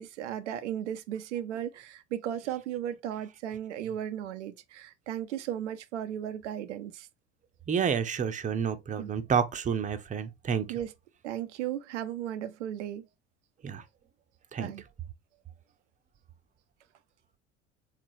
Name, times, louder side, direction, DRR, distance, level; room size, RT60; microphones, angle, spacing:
voice 1, 0.0-7.1 9.0-9.1 10.7-10.9 11.2-13.1 14.6-14.8, right 10 dB, 85° right, 0.5 m, -35 dB
voice 2, 7.7-10.7 13.6-13.8 14.5-14.7, right 7 dB, 20° right, 0.6 m, -29 dB
3.5 x 3.2 x 2.7 m
hypercardioid pair, 65°, 35 cm